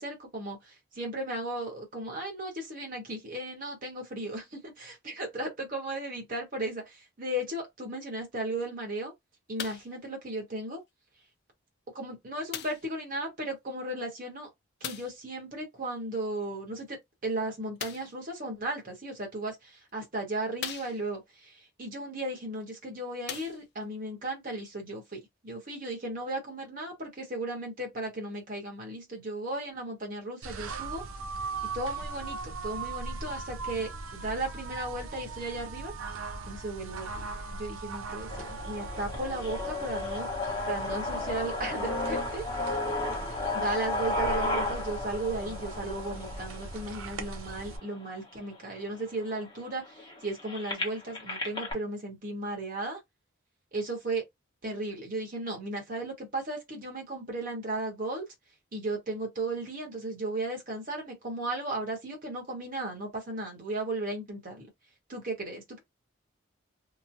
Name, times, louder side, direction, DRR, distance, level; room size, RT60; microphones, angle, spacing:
voice 1, 0.0-9.1 9.5-10.8 11.9-14.5 14.8-17.0 17.2-19.5 19.9-31.0 31.7-35.9 36.5-37.2 37.5-40.3 40.7-42.7 43.5-53.0 53.7-54.2 54.6-58.3 58.7-64.7 65.1-65.8, right 2 dB, 45° right, 1.2 m, -35 dB
sound 1, 9.6-10.0 10.9-11.0 12.5-12.9 14.8-15.2 17.8-18.2 19.2-19.3 19.9-20.0 20.6-21.3 22.6-22.7 23.2-23.9 24.7-24.8, left 8 dB, 55° left, 0.4 m, -40 dB
sound 2, 30.4-47.8, right 3 dB, 80° right, 0.6 m, -39 dB
sound 3, 38.3-48.3 48.9-49.0 49.3-51.7, left 2 dB, 20° left, 1.0 m, -34 dB
3.0 x 2.2 x 2.6 m
head